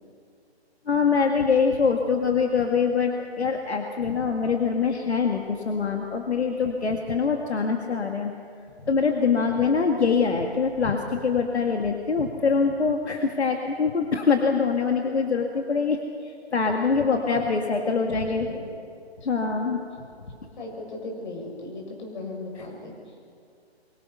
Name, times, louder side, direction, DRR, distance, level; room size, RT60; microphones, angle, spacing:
voice 1, 0.9-8.3 8.9-18.5 19.2-19.8, left 5 dB, 80° left, 3 dB, 2.1 m, -24 dB
voice 2, 17.0-17.5 17.9-18.2 18.5-18.7 19.4-19.8 20.6-23.1, left 2 dB, 45° left, 1 dB, 6.4 m, -38 dB
26.0 x 23.0 x 5.7 m, 2.4 s
hypercardioid pair, 165°, 33 cm